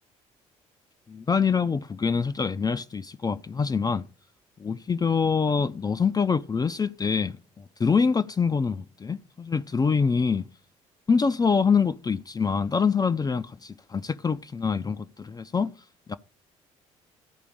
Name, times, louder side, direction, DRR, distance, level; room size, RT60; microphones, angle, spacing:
voice 1, 1.1-4.1 4.6-7.4 7.8-10.5 11.1-15.7 16.1-16.2, left 5 dB, 25° left, 0.4 m, -25 dB
13.5 x 5.0 x 4.9 m
hypercardioid pair, 55°, 17 cm